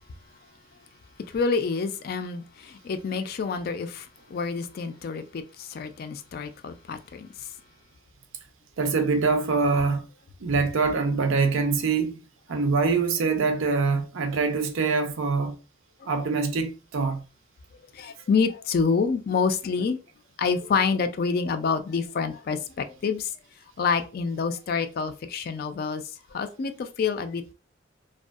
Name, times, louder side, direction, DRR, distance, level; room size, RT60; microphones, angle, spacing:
voice 1, 1.3-7.3 16.0-16.1 17.9-20.0 20.4-23.3 23.8-26.0 26.3-27.5, left 5 dB, 50° left, 0.3 m, -27 dB
voice 2, 8.8-10.0 10.4-12.2 12.5-15.5 16.1-17.2, right 4 dB, 85° right, 0.5 m, -24 dB
2.6 x 2.3 x 2.3 m
head